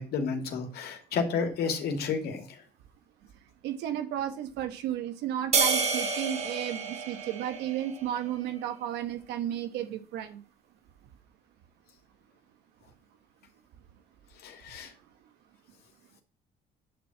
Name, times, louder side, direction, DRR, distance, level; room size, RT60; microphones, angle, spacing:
voice 1, 0.0-2.4 14.4-14.9, left 5 dB, 70° left, 4 dB, 2.6 m, -31 dB
voice 2, 3.6-10.4, right 11 dB, 85° right, 8 dB, 1.3 m, -33 dB
sound 1, 5.5-8.1, right 4 dB, 40° right, 1.9 m, -29 dB
11.0 x 4.4 x 7.8 m, 0.37 s
cardioid pair, 110°, 17 cm